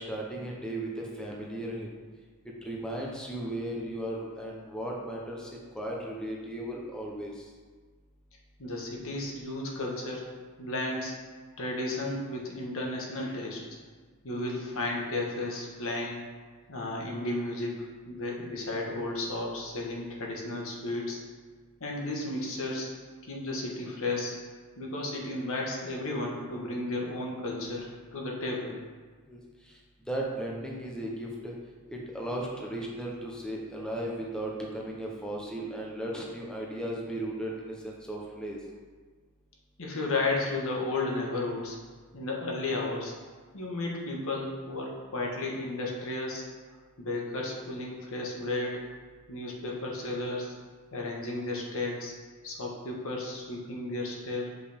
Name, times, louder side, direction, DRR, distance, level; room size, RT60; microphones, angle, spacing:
voice 1, 0.0-1.9 2.6-7.5 29.3-29.4 29.7-29.8 30.1-31.5 31.9-38.6, right 1 dB, 5° left, -3 dB, 0.7 m, -36 dB
voice 2, 8.6-10.3 10.6-11.1 11.6-13.6 14.2-16.2 16.7-21.2 21.8-22.9 23.2-24.4 24.8-28.7 39.8-41.8 42.1-43.1 43.5-46.4 47.0-48.8 49.3-50.5 50.9-52.1 52.4-54.5, left 2 dB, 65° left, -2 dB, 1.2 m, -33 dB
6.7 x 5.3 x 3.5 m, 1.5 s
head